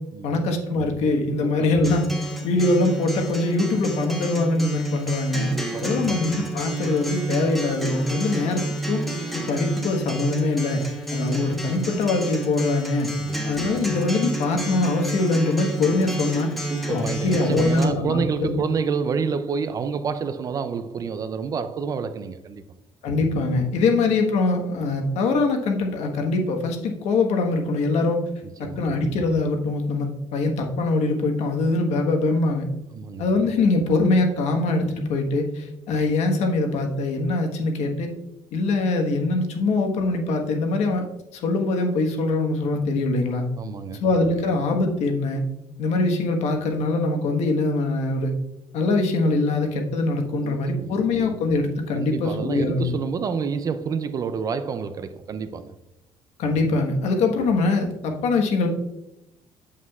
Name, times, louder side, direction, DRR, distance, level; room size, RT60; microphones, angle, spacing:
voice 1, 0.2-2.1 2.4-5.5 5.8-9.0 9.3-10.8 11.1-13.1 13.5-16.5 16.9-18.6 23.0-28.2 28.6-32.6 33.2-38.1 38.5-41.0 41.3-43.4 44.0-45.4 45.8-48.3 48.7-53.0 56.4-58.7, left 3 dB, 70° left, 1.3 m, -23 dB
voice 2, 1.4-1.8 5.5-6.3 13.2-13.4 16.7-22.8 28.4-28.8 32.9-33.3 43.6-44.0 50.4-50.9 51.9-55.8, right 6 dB, 30° right, 0.4 m, -29 dB
Acoustic guitar, 1.8-17.8, right 1 dB, ahead, 1.0 m, -30 dB
8.3 x 7.4 x 2.4 m
cardioid pair, 165°, 12 cm